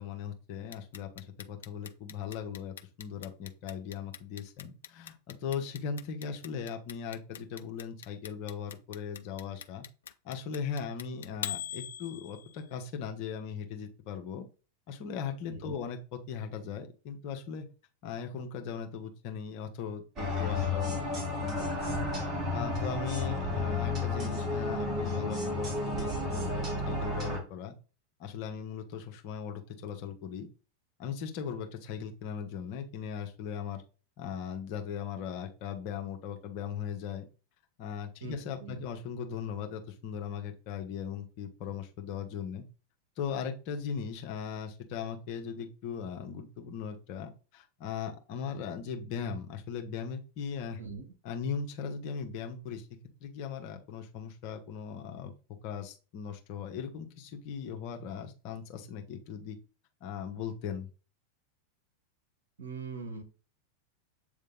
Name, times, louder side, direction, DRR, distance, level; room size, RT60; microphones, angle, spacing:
voice 1, 0.0-9.8 10.2-14.5 14.9-17.7 18.0-27.7 28.2-30.5 31.0-33.8 34.2-37.2 37.8-42.6 43.2-50.8 51.2-52.9 53.2-55.3 55.6-59.6 60.0-60.9, left 7 dB, 45° left, 4 dB, 1.3 m, -38 dB
Clock, 0.7-12.7, left 9 dB, 65° left, 0.5 m, -42 dB
voice 2, 15.5-15.8 23.2-23.4 38.2-38.8 50.8-51.0 62.6-63.2, right 4 dB, 65° right, 4 dB, 2.0 m, -41 dB
sound 1, 20.2-27.4, left 2 dB, 30° right, 2.0 m, -32 dB
8.0 x 3.5 x 3.9 m, 0.34 s
figure-of-eight pair, 90°, 0 cm